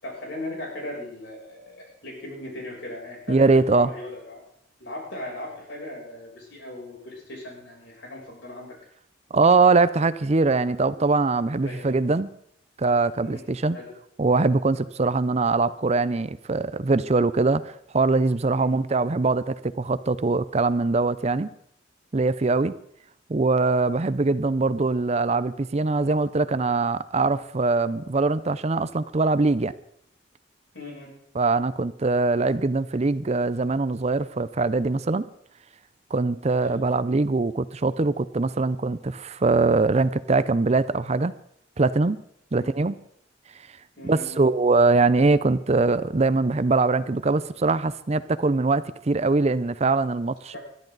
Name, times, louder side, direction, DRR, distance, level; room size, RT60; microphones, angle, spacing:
voice 1, 0.0-4.4 4.8-8.7 11.6-11.9 13.2-13.4 13.7-13.9 18.5-18.7 30.7-31.1 36.6-36.8 42.5-42.7 44.0-44.4 50.5-50.6, left 1 dB, 70° left, -2 dB, 7.4 m, -38 dB
voice 2, 3.3-3.9 9.3-12.3 12.8-13.8 14.2-21.5 22.1-22.7 23.3-29.7 31.3-35.2 36.1-41.3 41.8-42.2 42.5-43.0 44.0-50.6, right 3 dB, 35° right, 15 dB, 0.5 m, -22 dB
21.0 x 13.0 x 4.0 m, 0.69 s
head